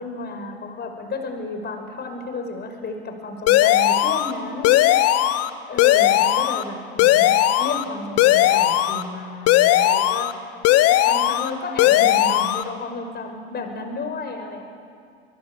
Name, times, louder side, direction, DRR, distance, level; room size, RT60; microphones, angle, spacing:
voice 1, 0.0-5.1 5.7-14.6, left 3 dB, 30° left, 6 dB, 5.4 m, -32 dB
sound 1, 3.5-4.3 4.6-5.5 5.8-6.6 7.0-7.8 8.2-9.0 9.5-10.3 10.6-11.5 11.8-12.6, left 13 dB, 50° left, 1.3 m, -17 dB
25.0 x 23.0 x 8.4 m, 2.3 s
hypercardioid pair, 80°, 32 cm